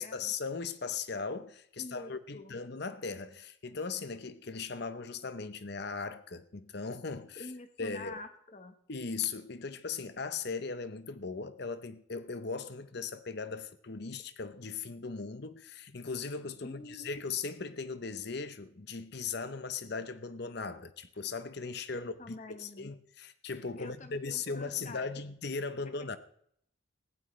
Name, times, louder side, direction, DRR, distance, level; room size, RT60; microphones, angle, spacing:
voice 1, 0.0-7.5 7.8-8.2 8.9-22.1 22.5-26.2, left 4 dB, 50° left, 0.8 m, -38 dB
voice 2, 1.8-2.5 7.4-8.8 16.6-17.1 22.0-22.9 23.8-25.1 25.8-26.1, left 2 dB, 35° left, 1.2 m, -47 dB
20.0 x 15.5 x 3.3 m
head